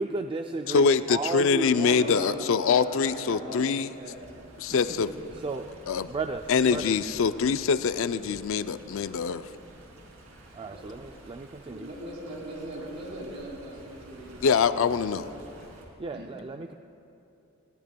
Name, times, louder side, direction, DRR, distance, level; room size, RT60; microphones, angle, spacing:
voice 1, 0.0-2.1 5.4-5.7 6.1-6.9 10.5-11.9 16.0-16.7, right 3 dB, 25° right, 5 dB, 0.3 m, -34 dB
voice 2, 0.7-3.9 4.6-5.1 5.9-6.1 6.5-9.5 14.4-15.3, left 5 dB, 65° left, 12 dB, 0.4 m, -24 dB
Stream, 0.7-15.9, right 1 dB, 90° right, 2.6 m, -51 dB
voice 3, 1.7-4.2 4.7-5.1 10.7-10.8 11.7-15.5 16.1-16.3, right 1 dB, 55° right, -2 dB, 3.2 m, -40 dB
20.5 x 17.0 x 2.3 m, 3.0 s
head